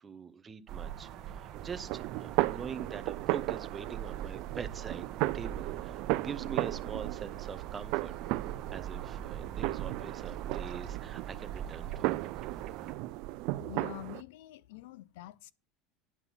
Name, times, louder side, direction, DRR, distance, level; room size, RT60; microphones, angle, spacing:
voice 1, 0.0-5.1 5.3-8.1 8.7-12.1, right 6 dB, 20° right, 0.7 m, -43 dB
sound 1, 0.7-12.9, right 10 dB, 45° right, 1.1 m, -42 dB
sound 2, 1.5-14.2, right 20 dB, 60° right, 0.4 m, -35 dB
voice 2, 13.7-15.5, left 15 dB, 85° left, 0.5 m, -46 dB
9.8 x 6.0 x 5.7 m
cardioid pair, 150°, 0 cm